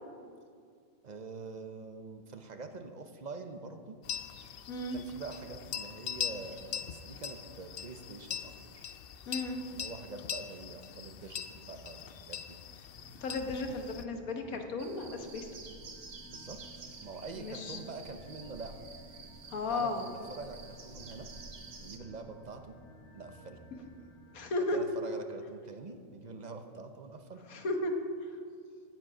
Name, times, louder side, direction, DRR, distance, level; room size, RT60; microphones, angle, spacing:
voice 1, 1.0-4.0 4.9-8.9 9.7-12.6 16.3-16.6 17.0-18.7 19.7-21.3 21.8-22.7 23.1-23.7 24.7-27.4, right 3 dB, 45° right, 6 dB, 0.6 m, -45 dB
sound 1, 4.0-14.0, left 8 dB, 65° left, 0.6 m, -42 dB
voice 2, 4.7-5.0 9.3-9.6 13.2-15.5 17.4-17.8 19.5-20.1 24.3-24.8 27.5-27.9 28.2-28.3, left 2 dB, 85° left, 4 dB, 1.6 m, -34 dB
sound 2, 12.9-24.4, right 1 dB, 20° left, 2.0 m, -56 dB
sound 3, 14.8-22.0, right 4 dB, 70° right, 1.5 m, -50 dB
17.0 x 7.7 x 5.0 m, 2.2 s
omnidirectional pair, 1.5 m